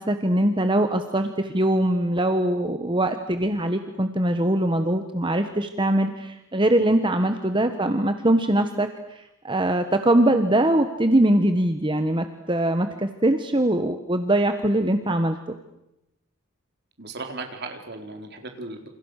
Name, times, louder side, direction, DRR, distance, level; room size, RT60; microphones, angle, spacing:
voice 1, 0.0-8.9 9.4-15.4, right 1 dB, 20° right, 8 dB, 1.3 m, -22 dB
voice 2, 17.0-18.9, right 3 dB, 50° right, 4 dB, 4.3 m, -36 dB
29.0 x 28.0 x 6.6 m, 0.90 s
head